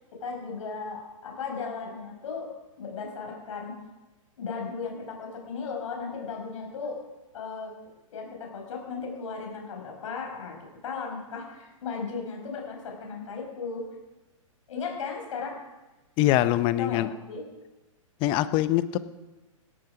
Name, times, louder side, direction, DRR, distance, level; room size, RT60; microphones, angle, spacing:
voice 1, 0.2-2.5 2.8-3.8 4.4-7.0 7.3-7.7 8.1-10.6 10.8-13.8 14.7-15.5 16.8-17.4, left 5 dB, 65° left, 1 dB, 5.9 m, -36 dB
voice 2, 16.2-17.1 18.2-19.0, left 14 dB, 30° left, 14 dB, 0.8 m, -23 dB
17.5 x 12.5 x 5.0 m, 1.1 s
hypercardioid pair, 135°, 18 cm